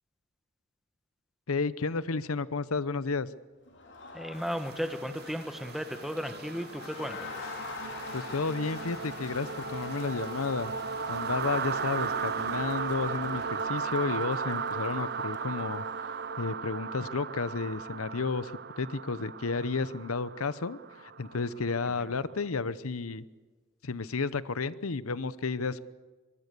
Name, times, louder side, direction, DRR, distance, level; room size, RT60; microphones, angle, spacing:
voice 1, 1.5-3.3 8.1-10.7 11.1-18.5 18.8-23.2 23.8-25.8, left 4 dB, 85° left, 17 dB, 0.9 m, -32 dB
Crowd, 3.7-16.2, left 3 dB, 55° left, 3.6 m, -44 dB
voice 2, 4.1-7.3 21.9-22.1, equal, ahead, 8 dB, 1.5 m, -35 dB
sound 1, 4.5-22.3, right 6 dB, 50° right, 0.7 m, -36 dB
24.5 x 22.5 x 6.9 m, 1.3 s
head